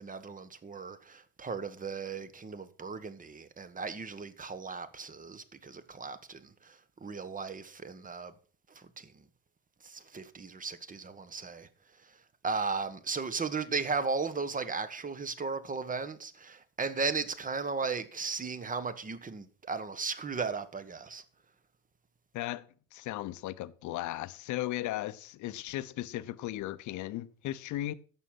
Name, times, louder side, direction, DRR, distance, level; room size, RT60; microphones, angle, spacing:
voice 1, 0.0-8.3 8.7-9.3 9.8-11.7 12.0-12.2 12.4-21.2, right 4 dB, 20° right, 1.4 m, -36 dB
voice 2, 22.3-22.7 22.9-27.9, left 15 dB, 50° left, 0.9 m, -36 dB
11.0 x 7.2 x 5.9 m
hypercardioid pair, 75°, 37 cm